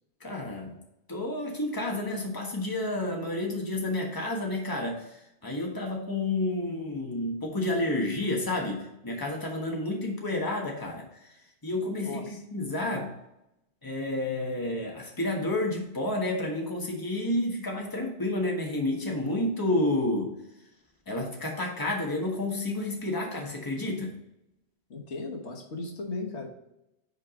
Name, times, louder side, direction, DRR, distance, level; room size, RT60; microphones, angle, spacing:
voice 1, 0.2-0.7 1.1-11.3 11.6-13.2 13.8-20.3 21.1-24.1, left 2 dB, 20° left, 0 dB, 1.3 m, -30 dB
voice 2, 12.0-12.4 24.9-26.5, left 3 dB, 85° left, 0 dB, 1.6 m, -36 dB
5.5 x 4.7 x 5.1 m, 0.85 s
omnidirectional pair, 1.1 m